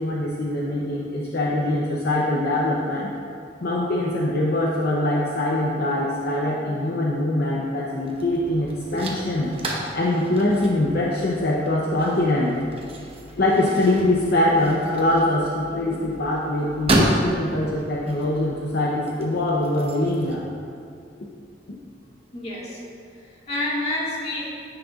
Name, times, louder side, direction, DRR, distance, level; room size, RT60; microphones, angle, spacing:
voice 1, 0.0-3.1 3.6-9.5 9.9-12.6 13.4-20.5, left 1 dB, 60° left, -3 dB, 0.7 m, -23 dB
sound 1, 8.0-20.4, right 1 dB, 35° right, 0.9 m, -31 dB
voice 2, 22.3-22.8 23.2-24.4, left 1 dB, 35° left, -6 dB, 1.8 m, -28 dB
10.0 x 7.8 x 2.4 m, 2.4 s
head